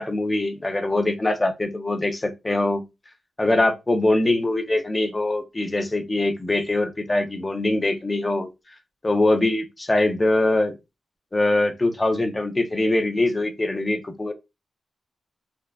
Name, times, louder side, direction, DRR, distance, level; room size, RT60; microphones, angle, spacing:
voice 1, 0.0-2.8 3.4-8.5 9.0-10.7 11.3-14.3, left 2 dB, 20° left, 0.4 m, -23 dB
3.3 x 2.3 x 2.2 m
wide cardioid pair, 160°, 0 cm